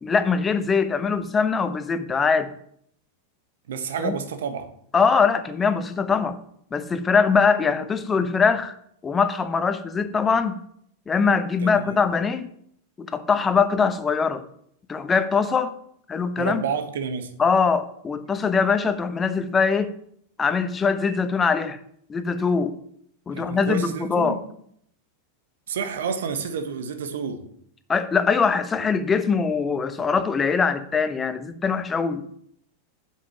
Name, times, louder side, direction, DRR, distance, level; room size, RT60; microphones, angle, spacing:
voice 1, 0.0-2.5 4.0-4.1 4.9-6.4 6.7-8.7 9.0-10.6 11.1-12.5 13.0-14.4 14.9-15.7 16.1-16.6 17.4-19.9 20.4-21.8 22.1-22.8 23.3-24.4 27.9-32.3, left 5 dB, 20° left, 1.0 m, -22 dB
voice 2, 3.7-4.7 11.6-12.0 16.4-17.3 23.3-24.4 25.7-27.4, right 6 dB, 60° right, 1.4 m, -29 dB
8.6 x 7.6 x 5.9 m
figure-of-eight pair, 90°, 0 cm